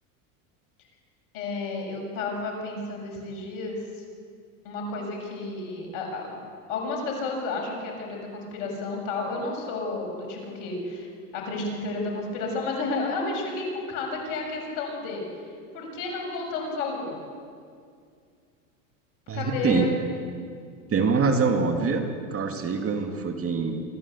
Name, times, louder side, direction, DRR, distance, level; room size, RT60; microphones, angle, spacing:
voice 1, 1.3-4.0 4.6-6.4 6.7-15.2 15.7-17.2 19.3-19.9, left 3 dB, 65° left, 0 dB, 7.0 m, -32 dB
voice 2, 19.3-19.9 20.9-22.1 22.3-23.8, right 4 dB, 30° right, 6 dB, 2.3 m, -24 dB
26.0 x 14.5 x 8.4 m, 2.2 s
supercardioid pair, 110°, 45 cm